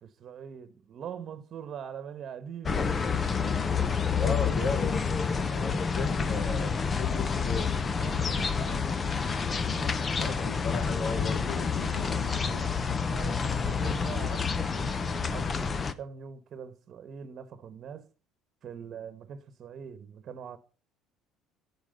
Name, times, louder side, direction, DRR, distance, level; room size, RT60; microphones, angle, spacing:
voice 1, 0.0-2.9 8.0-9.3 9.7-10.4 13.1-18.1 18.6-20.6, right 7 dB, 45° right, 1.3 m, -43 dB
sound 1, 2.7-15.9, left 5 dB, 25° left, 0.8 m, -28 dB
voice 2, 4.2-5.0 5.5-7.8 10.2-12.6, left 3 dB, 60° left, 3.2 m, -36 dB
14.5 x 4.9 x 6.7 m
cardioid pair, 135°, 0 cm